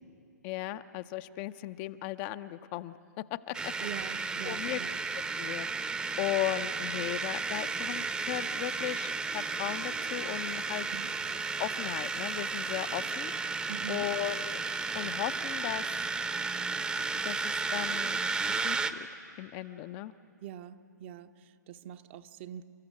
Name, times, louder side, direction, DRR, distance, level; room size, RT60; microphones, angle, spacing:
voice 1, 0.4-2.9 3.5-3.7 4.0-4.2 4.4-4.8 5.4-10.9 11.6-14.6 14.9-15.9 17.2-18.2 18.6-19.1 19.4-20.1, left 15 dB, 30° left, 11 dB, 0.5 m, -36 dB
sound 1, 3.5-18.9, right 4 dB, 10° right, 0.8 m, -33 dB
voice 2, 3.8-4.9 10.9-11.1 13.7-14.1 20.4-22.6, right 9 dB, 40° right, 10 dB, 0.8 m, -43 dB
29.0 x 14.0 x 9.2 m, 2.5 s
figure-of-eight pair, 120°, 10 cm